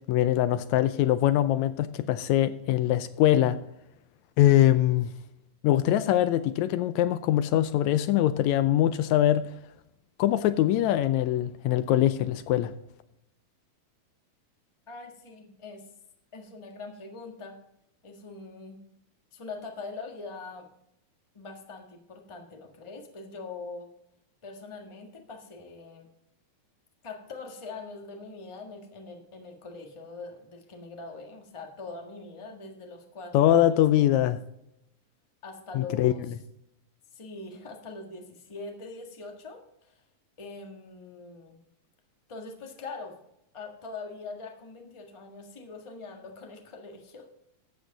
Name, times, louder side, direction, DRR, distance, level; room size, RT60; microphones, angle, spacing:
voice 1, 0.1-3.6 4.4-5.1 5.6-9.4 10.2-12.7 33.3-34.4 35.8-36.1, left 12 dB, 80° left, 13 dB, 1.8 m, -23 dB
voice 2, 14.9-15.8 16.3-17.6 18.0-18.8 19.3-20.7 21.3-23.9 24.4-26.1 27.0-33.8 35.4-36.3 37.1-40.0 40.4-41.6 42.3-43.2 43.5-47.4, left 3 dB, 25° left, 2 dB, 0.7 m, -42 dB
13.0 x 8.2 x 3.9 m, 0.80 s
omnidirectional pair, 3.4 m